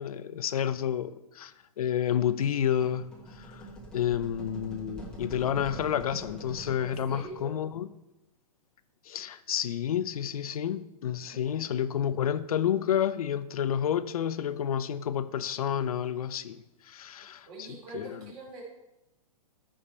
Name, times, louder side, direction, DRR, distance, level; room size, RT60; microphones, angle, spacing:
voice 1, 0.0-3.1 3.4-3.7 3.9-7.9 9.1-17.5 17.9-18.2, left 9 dB, 70° left, 0.7 m, -30 dB
sound 1, 2.6-7.5, right 2 dB, 5° left, 1.3 m, -44 dB
voice 2, 6.8-7.5 11.3-11.6 17.5-18.6, right 3 dB, 25° right, 3.1 m, -44 dB
14.0 x 5.2 x 4.3 m
hypercardioid pair, 160°, 19 cm